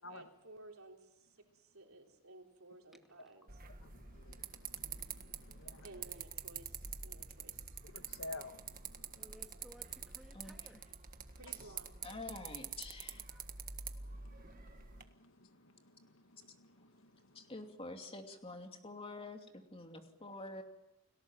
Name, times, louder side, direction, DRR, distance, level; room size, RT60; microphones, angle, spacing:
voice 1, 0.1-3.5 5.8-7.6 11.3-12.0, right 2 dB, 85° right, 3.7 m, -56 dB
voice 2, 2.9-3.3 5.8-6.2 9.1-11.1 13.3-13.4, equal, ahead, 2.2 m, -61 dB
sound 1, 3.5-15.0, right 7 dB, 40° right, 1.6 m, -47 dB
voice 3, 3.8-5.9 7.8-9.1 14.0-17.5, left 2 dB, 65° left, 1.8 m, -53 dB
voice 4, 12.0-13.2 17.3-20.6, left 2 dB, 25° left, 2.7 m, -47 dB
30.0 x 18.5 x 7.6 m
head